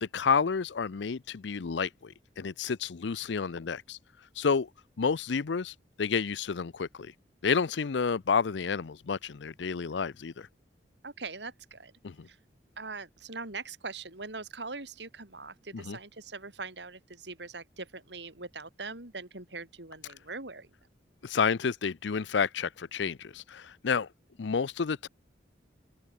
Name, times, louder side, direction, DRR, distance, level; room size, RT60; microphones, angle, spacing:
voice 1, 0.0-4.0 4.3-4.7 5.0-7.1 7.4-10.5 12.0-12.3 15.7-16.0 21.2-24.1 24.4-25.1, left 5 dB, 80° left, 0.5 m, -30 dB
voice 2, 11.0-11.9 12.2-12.4 12.8-20.7, right 3 dB, 75° right, 4.1 m, -42 dB
open air
head